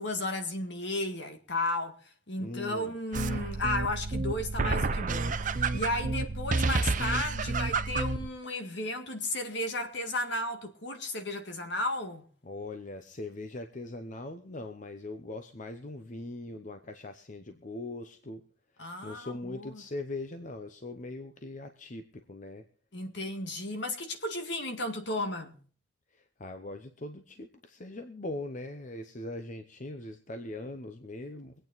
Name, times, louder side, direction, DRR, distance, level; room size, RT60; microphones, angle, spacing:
voice 1, 0.0-2.0 2.3-12.2 18.8-19.8 22.9-25.6, left 2 dB, 65° left, 1.9 m, -34 dB
voice 2, 2.4-3.0 12.4-18.4 19.0-22.6 26.1-31.5, left 2 dB, 40° left, 0.8 m, -41 dB
sound 1, 3.1-8.3, right 3 dB, 40° right, 0.7 m, -30 dB
23.5 x 9.0 x 4.0 m
head